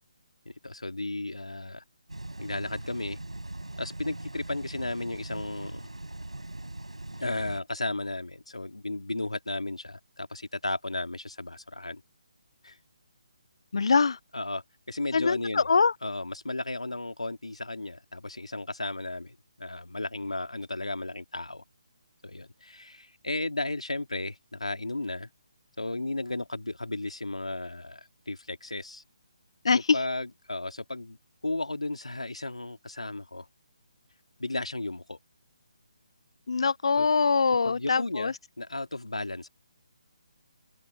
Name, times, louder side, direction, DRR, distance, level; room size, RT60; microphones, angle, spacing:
voice 1, 0.4-1.8 2.4-3.2 3.8-5.9 7.2-12.0 12.6-12.8 14.3-15.7 16.0-21.6 22.2-25.3 25.8-29.0 29.7-31.2 31.4-33.5 34.4-35.2 37.0-37.1 37.6-39.5, left 2 dB, 80° left, 3.0 m, -34 dB
sound 1, 2.1-7.6, right 2 dB, 85° right, 5.7 m, -40 dB
voice 2, 13.7-14.2 15.1-15.9 29.6-30.0 36.5-38.3, left 4 dB, 60° left, 0.7 m, -23 dB
figure-of-eight pair, 145°, 3 cm